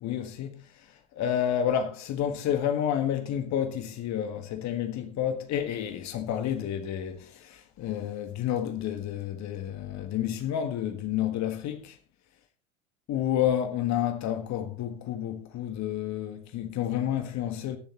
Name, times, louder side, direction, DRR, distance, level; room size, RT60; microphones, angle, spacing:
voice 1, 0.0-12.0 13.1-17.8, left 10 dB, 45° left, 1.5 m, -30 dB
21.5 x 7.2 x 3.0 m
figure-of-eight pair, 70°, 39 cm